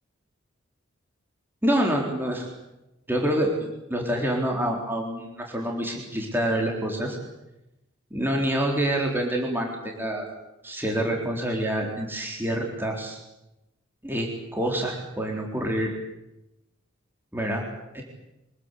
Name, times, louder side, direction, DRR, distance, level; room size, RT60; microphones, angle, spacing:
voice 1, 1.6-2.5 3.1-7.2 8.1-10.3 10.6-13.2 14.0-15.9 17.3-17.6 17.9-18.0, right 1 dB, 10° right, 0 dB, 4.0 m, -27 dB
25.0 x 20.5 x 8.4 m, 0.92 s
head